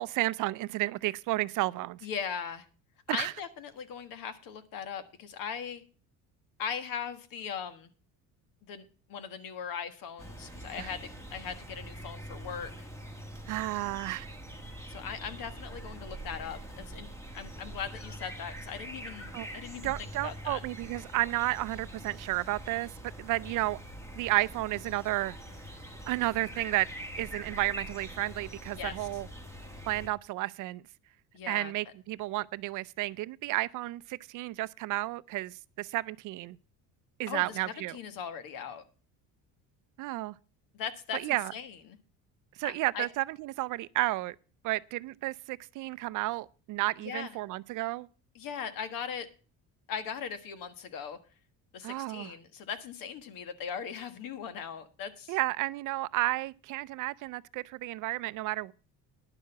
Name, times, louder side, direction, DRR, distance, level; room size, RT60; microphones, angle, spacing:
voice 1, 0.0-2.0 3.1-3.3 10.8-10.9 13.5-14.3 19.3-19.5 19.8-23.8 24.2-25.4 26.1-26.9 27.2-29.3 29.9-30.8 31.5-36.6 37.2-38.0 40.0-40.3 41.1-41.5 42.6-44.3 44.6-48.1 51.8-52.3 55.3-58.7, right 18 dB, 55° right, 0.4 m, -32 dB
voice 2, 2.0-2.7 3.1-5.8 6.6-7.9 8.7-12.9 14.9-17.1 17.3-19.9 20.2-20.6 28.8-29.2 31.3-31.7 37.3-38.8 40.7-42.0 42.6-43.1 47.0-47.3 48.3-49.3 49.9-51.2 51.7-55.4, left 7 dB, 65° left, 1.5 m, -39 dB
sound 1, 10.2-30.1, right 1 dB, 5° left, 1.5 m, -44 dB
10.5 x 6.5 x 6.7 m
cardioid pair, 150°, 37 cm